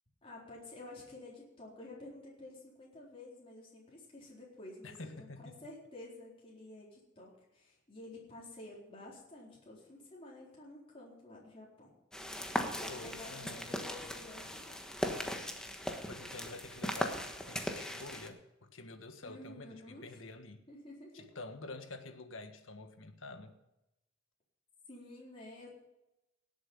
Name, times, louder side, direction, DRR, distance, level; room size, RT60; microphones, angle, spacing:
voice 1, 0.2-11.9 12.6-14.8 19.2-20.2 20.7-21.2 24.9-25.7, left 2 dB, 30° left, -5 dB, 4.1 m, -51 dB
voice 2, 4.8-5.6 12.9-13.8 16.1-20.6 21.1-23.6, left 2 dB, 75° left, 8 dB, 1.5 m, -48 dB
sound 1, 12.1-18.3, equal, 5° left, 1.3 m, -39 dB
18.0 x 8.2 x 5.4 m, 0.92 s
head